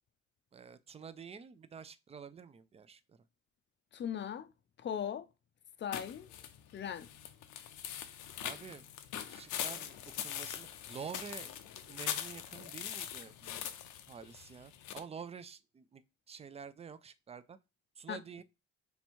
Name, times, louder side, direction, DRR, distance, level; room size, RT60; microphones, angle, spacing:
voice 1, 0.5-3.2 8.4-8.9 9.2-11.5 11.8-13.6 14.1-17.6 18.0-18.4, right 6 dB, 20° right, 0.3 m, -49 dB
voice 2, 3.9-4.5 4.8-5.3 5.8-6.3 6.7-7.1 18.1-18.2, left 8 dB, 40° left, 0.5 m, -38 dB
sound 1, 5.9-15.0, left 10 dB, 90° left, 0.6 m, -42 dB
3.4 x 2.9 x 4.3 m
cardioid pair, 90°, 30 cm